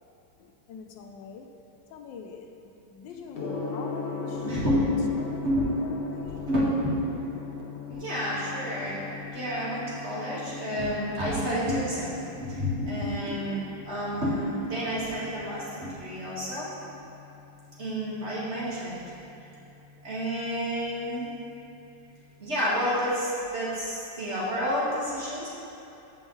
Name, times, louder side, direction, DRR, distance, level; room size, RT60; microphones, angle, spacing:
voice 1, 0.4-1.5 1.9-6.5, left 5 dB, 80° left, 4 dB, 1.4 m, -45 dB
Gong, 3.3-22.4, left 5 dB, 45° left, 0.8 m, -41 dB
voice 2, 4.2-6.0 6.3-7.3 7.9-16.7 17.8-19.0 20.0-21.3 22.4-25.5, equal, 35° right, -8 dB, 2.2 m, -29 dB
14.5 x 5.4 x 3.2 m, 2.9 s
omnidirectional pair, 2.0 m